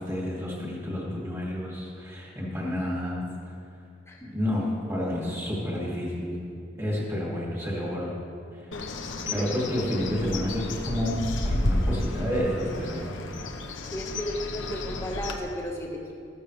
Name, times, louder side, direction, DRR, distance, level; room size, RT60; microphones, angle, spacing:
voice 1, 0.0-3.2 4.3-6.4 6.8-8.2 8.5-8.6 9.3-13.3, left 1 dB, 15° right, -4 dB, 2.5 m, -30 dB
Bird, 8.7-15.4, left 1 dB, 90° left, 1.0 m, -31 dB
voice 2, 13.9-16.1, equal, 15° left, -1 dB, 1.4 m, -34 dB
14.5 x 14.0 x 3.3 m, 2.5 s
head